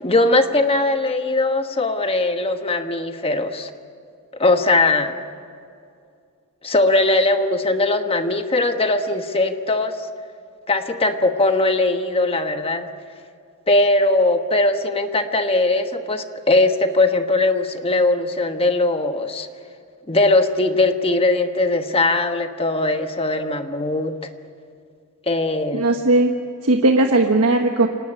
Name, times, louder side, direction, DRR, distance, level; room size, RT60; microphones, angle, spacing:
voice 1, 0.0-3.7 4.4-5.2 6.6-10.1 10.7-12.9 13.7-19.5 20.1-24.1 25.3-25.9, left 2 dB, 25° left, 7 dB, 1.3 m, -20 dB
voice 2, 25.7-26.3 26.6-27.9, right 2 dB, 80° right, 3 dB, 1.3 m, -17 dB
26.0 x 19.0 x 9.9 m, 2.3 s
head